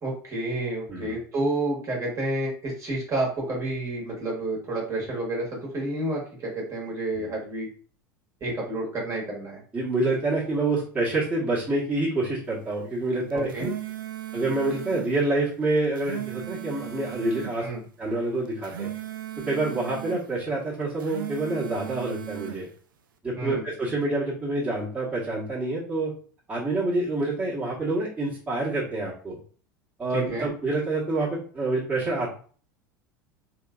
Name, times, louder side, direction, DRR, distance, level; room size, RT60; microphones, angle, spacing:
voice 1, 0.0-7.7 8.4-9.6 13.3-13.7 17.6-17.8 23.4-23.6 30.1-30.5, right 2 dB, 30° right, -3 dB, 1.4 m, -30 dB
voice 2, 9.7-13.7 14.3-17.7 18.0-18.9 19.4-22.7 23.2-26.1 26.5-29.4 30.0-32.3, right 2 dB, 15° right, -7 dB, 1.3 m, -27 dB
sound 1, 13.3-15.1 15.8-17.6 18.5-20.3 20.9-22.6, right 11 dB, 75° right, 0.4 m, -37 dB
3.1 x 2.9 x 2.4 m, 0.43 s
figure-of-eight pair, 80°, 11 cm